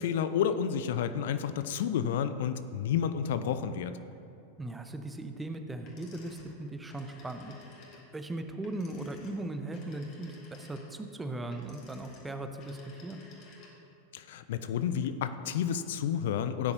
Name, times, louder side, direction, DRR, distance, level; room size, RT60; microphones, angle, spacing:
voice 1, 0.0-4.0 14.1-16.7, left 8 dB, 55° left, 11 dB, 0.4 m, -30 dB
voice 2, 4.6-7.5 8.1-13.2, right 2 dB, 10° right, 6 dB, 0.8 m, -38 dB
sound 1, 5.9-14.0, left 3 dB, 40° left, 2.4 m, -55 dB
16.0 x 9.7 x 2.7 m, 2.6 s
figure-of-eight pair, 90°, 0 cm